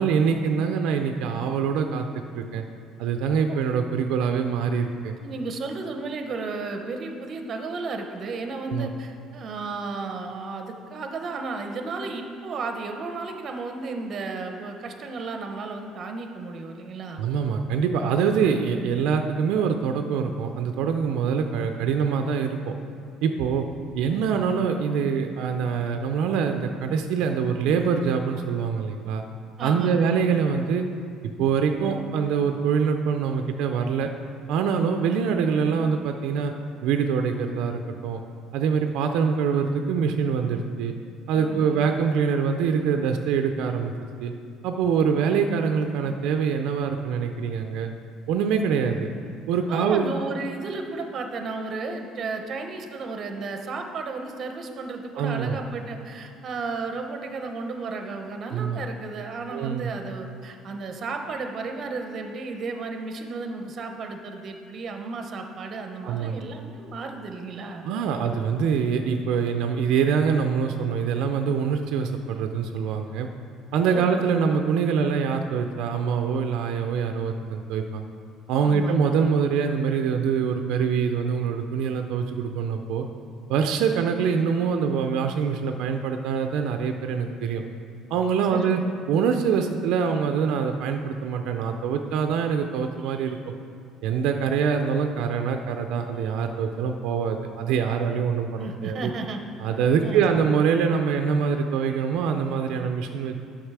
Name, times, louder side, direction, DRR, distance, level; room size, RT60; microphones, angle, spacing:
voice 1, 0.0-2.1 2.3-2.6 3.0-5.1 8.7-8.9 17.2-22.7 23.2-23.6 23.9-29.2 29.6-30.8 31.4-34.1 34.5-36.5 36.8-38.2 38.5-40.9 41.3-43.9 44.2-44.3 44.6-47.9 48.3-49.1 49.5-50.1 55.1-55.6 58.5-58.8 59.5-59.9 66.0-66.4 67.9-73.3 73.7-78.0 78.5-83.1 83.5-87.6 88.1-88.8 89.1-93.5 94.0-99.1 99.6-103.4, right 6 dB, 65° right, 5 dB, 0.5 m, -24 dB
voice 2, 5.2-17.2 29.6-30.0 41.3-42.0 49.7-67.8 73.9-74.1 78.6-79.2 88.5-88.9 98.5-99.4 100.0-100.4, right 3 dB, 30° right, 5 dB, 0.7 m, -33 dB
10.0 x 6.0 x 4.7 m, 2.3 s
cardioid pair, 180°, 0 cm